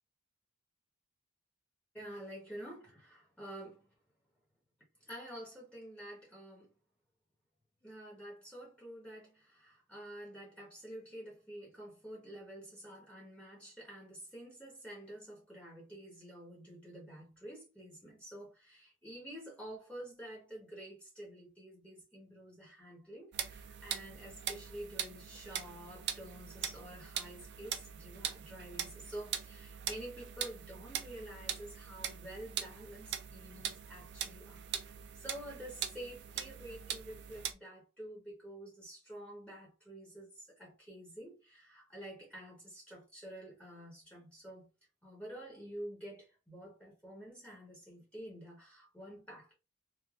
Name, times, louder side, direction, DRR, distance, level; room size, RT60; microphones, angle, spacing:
voice 1, 1.9-3.9 5.0-6.7 7.8-44.7 45.0-49.5, right 1 dB, 5° left, 1.0 m, -49 dB
sound 1, 23.3-37.5, right 9 dB, 55° right, 0.5 m, -42 dB
3.3 x 2.5 x 2.3 m
head